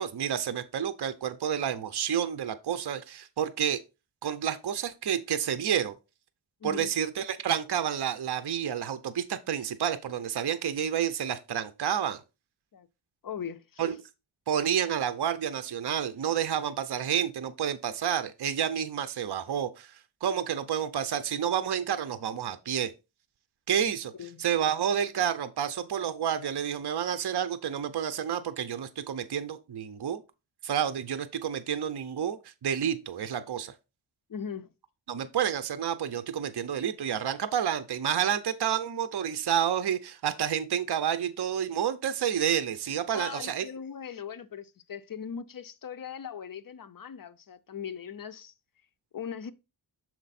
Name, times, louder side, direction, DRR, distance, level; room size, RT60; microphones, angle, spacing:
voice 1, 0.0-3.8 4.2-5.9 6.6-12.2 13.8-14.0 14.5-22.9 23.7-24.1 24.4-30.2 30.6-33.7 35.1-43.7, right 9 dB, 55° right, 0.7 m, -29 dB
voice 2, 6.6-6.9 12.7-12.9 13.2-13.8 24.2-24.4 34.3-34.7 43.1-48.5 49.1-49.5, left 7 dB, 45° left, 0.6 m, -39 dB
6.6 x 4.5 x 4.1 m
wide cardioid pair, 80°, 47 cm